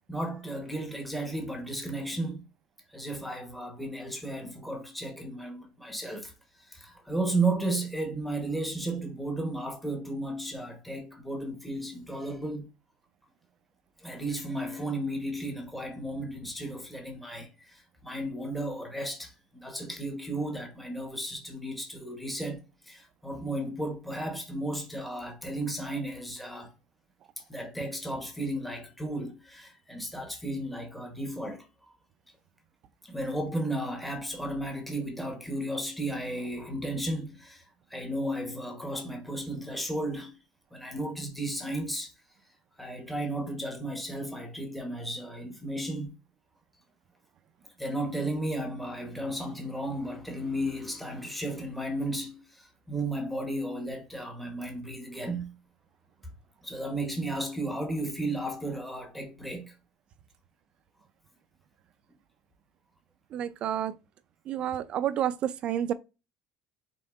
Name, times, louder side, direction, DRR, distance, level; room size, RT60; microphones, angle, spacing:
voice 1, 0.1-2.4 2.9-12.7 14.0-26.7 27.5-31.7 33.0-37.6 37.9-40.4 40.7-42.1 42.8-46.1 47.8-55.5 56.6-59.7, right 1 dB, 5° left, 1.0 m, -34 dB
voice 2, 63.3-63.9 64.5-65.9, right 10 dB, 40° right, 0.4 m, -29 dB
5.3 x 3.7 x 2.4 m
cardioid pair, 145°, 3 cm